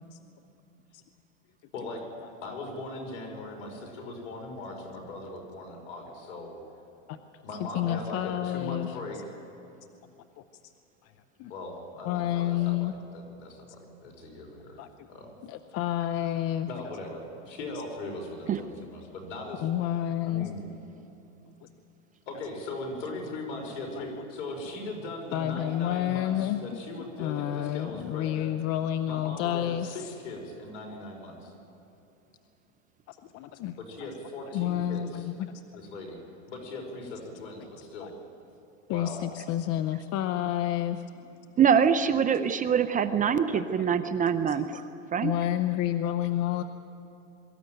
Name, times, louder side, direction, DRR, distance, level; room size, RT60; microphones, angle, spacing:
voice 1, 1.7-2.0 2.4-6.6 7.4-9.2 11.5-14.8 15.1-15.3 16.7-19.7 20.2-20.6 22.3-28.5 29.1-31.5 33.8-35.2 35.7-36.2 36.5-38.1 38.9-39.2 41.4-41.5 46.4-46.7, left 2 dB, 75° left, 2 dB, 5.8 m, -39 dB
voice 2, 7.1-9.0 11.4-11.5 12.0-12.9 14.8-14.9 15.5-16.7 19.6-20.5 24.0-24.1 25.3-26.8 27.2-30.1 33.1-33.7 34.5-35.5 38.0-38.1 38.9-41.0 43.3-43.9 44.3-44.8 45.2-46.6, left 12 dB, 40° left, 10 dB, 0.8 m, -30 dB
voice 3, 41.6-44.7 45.1-45.3, right 7 dB, 20° right, 11 dB, 0.7 m, -24 dB
23.0 x 14.0 x 9.2 m, 2.9 s
supercardioid pair, 120°, 38 cm